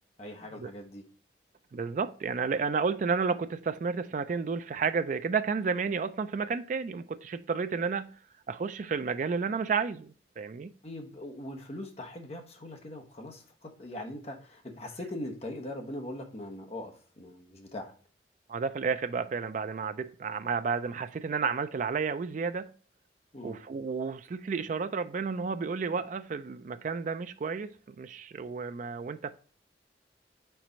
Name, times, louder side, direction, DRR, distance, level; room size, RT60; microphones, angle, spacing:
voice 1, 0.2-1.1 10.8-17.9 23.3-23.6, left 1 dB, 35° left, 1.0 m, -41 dB
voice 2, 1.7-8.1 8.5-10.7 18.5-22.7 23.4-29.3, right 5 dB, 45° right, 0.3 m, -31 dB
4.6 x 4.2 x 5.0 m
head